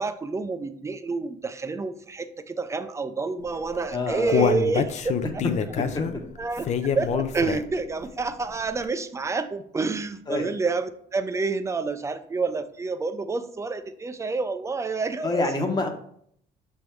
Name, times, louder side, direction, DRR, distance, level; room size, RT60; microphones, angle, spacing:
voice 1, 0.0-5.4 5.8-5.9 6.4-15.4, right 4 dB, 15° right, 11 dB, 0.4 m, -29 dB
Human voice, 3.7-7.9 8.3-8.4 8.8-8.9, left 7 dB, 40° left, 0.5 m, -26 dB
voice 2, 3.9-4.5 10.3-10.4 15.2-15.9, left 2 dB, 25° left, 4 dB, 1.0 m, -26 dB
6.4 x 3.5 x 4.5 m, 0.66 s
cardioid pair, 135°, 18 cm